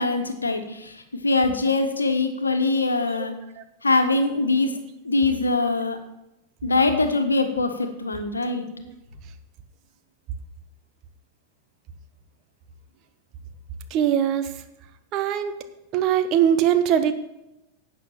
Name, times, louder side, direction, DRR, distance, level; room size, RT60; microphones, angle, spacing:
voice 1, 0.0-3.3 3.8-4.7 5.0-6.0 6.6-8.6, left 3 dB, 80° left, 7 dB, 1.4 m, -23 dB
voice 2, 13.9-14.5 15.1-15.5 15.9-17.1, right 9 dB, 40° right, 9 dB, 1.1 m, -21 dB
11.5 x 8.2 x 5.9 m, 0.91 s
figure-of-eight pair, 90°, 0 cm